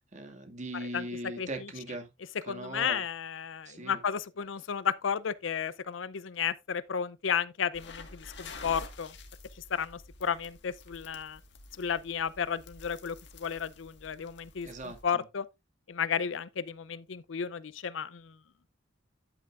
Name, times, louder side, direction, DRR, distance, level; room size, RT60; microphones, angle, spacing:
voice 1, 0.0-2.1 2.5-3.0 3.7-4.0 14.6-15.2, right 1 dB, 40° right, 2.1 m, -40 dB
voice 2, 1.4-1.7 2.5-9.1 9.7-11.4 11.8-15.5 15.9-18.4, left 7 dB, 85° left, 0.6 m, -33 dB
sound 1, 7.7-15.0, left 3 dB, 65° left, 1.7 m, -49 dB
10.0 x 9.2 x 2.5 m
head